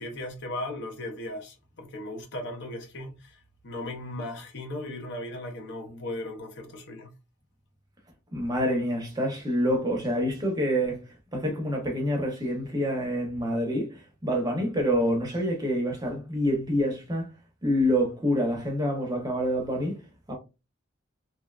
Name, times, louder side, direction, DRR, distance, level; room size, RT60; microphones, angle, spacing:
voice 1, 0.0-3.4 3.6-7.1, left 1 dB, 60° left, 0.6 m, -37 dB
voice 2, 8.3-11.0 11.3-17.3 17.6-20.0 20.3-20.4, equal, 20° right, 0.6 m, -27 dB
2.6 x 2.1 x 2.3 m
head